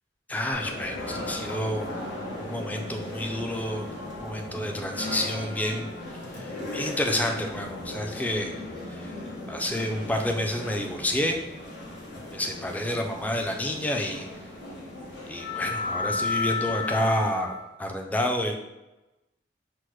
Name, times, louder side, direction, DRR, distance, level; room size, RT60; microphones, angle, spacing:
voice 1, 0.3-1.9 2.4-3.9 4.1-5.9 6.3-8.5 8.9-9.1 9.5-11.4 12.3-14.2 15.3-17.5 17.8-18.5, left 1 dB, 10° left, 3 dB, 0.4 m, -29 dB
sound 1, 0.5-17.7, left 2 dB, 80° left, 1.1 m, -35 dB
5.9 x 2.1 x 3.1 m, 0.99 s
head